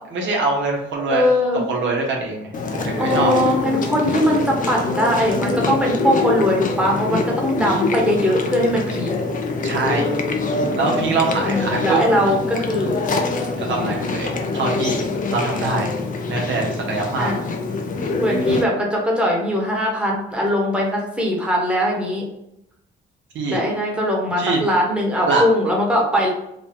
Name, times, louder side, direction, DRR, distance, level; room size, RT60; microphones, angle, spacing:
voice 1, 0.1-1.2 1.7-3.3 9.6-10.1 10.8-12.0 13.6-15.9 16.3-17.3 18.5-18.6 23.3-23.6 24.4-24.6 25.3-25.4, right 3 dB, 70° right, 0 dB, 1.0 m, -23 dB
voice 2, 1.1-1.6 3.0-9.1 11.4-13.0 13.8-13.9 14.2-14.3 15.6-16.1 17.2-17.4 18.2-22.3 23.5-26.3, equal, 5° right, -2 dB, 1.1 m, -21 dB
Chewing mastication, 2.5-18.6, left 3 dB, 40° left, 0.6 m, -24 dB
3.8 x 2.3 x 3.7 m, 0.83 s
cardioid pair, 90°, 20 cm